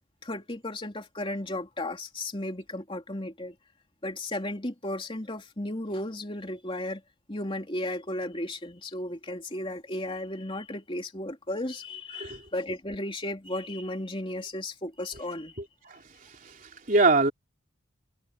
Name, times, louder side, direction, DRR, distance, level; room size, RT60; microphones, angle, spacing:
voice 1, 0.2-3.5 4.0-7.0 7.3-15.6, left 1 dB, 25° left, 3.3 m, -34 dB
voice 2, 16.4-17.3, right 3 dB, 40° right, 3.5 m, -24 dB
head